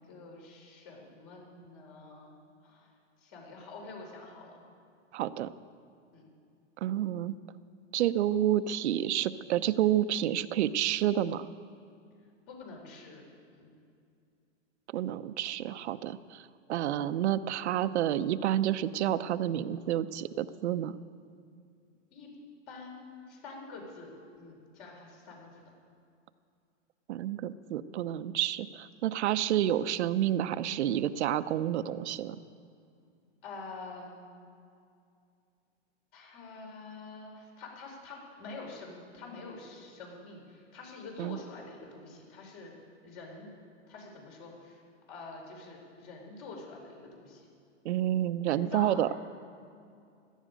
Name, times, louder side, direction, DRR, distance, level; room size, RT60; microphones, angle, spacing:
voice 1, 0.1-2.4 2.6-2.9 3.2-4.6 6.1-6.3 12.5-13.2 13.5-13.7 22.1-22.3 22.7-24.1 24.4-25.6 33.4-34.3 36.1-42.7 43.0-43.5 43.9-44.8 45.1-47.5 48.5-49.1, left 3 dB, 45° left, 0 dB, 4.5 m, -46 dB
voice 2, 5.1-5.5 6.8-7.4 7.9-11.5 14.9-21.0 27.1-32.4 41.2-41.4 47.8-49.1, right 11 dB, 65° right, 14 dB, 0.7 m, -29 dB
16.5 x 13.5 x 5.2 m, 2.4 s
hypercardioid pair, 135°, 37 cm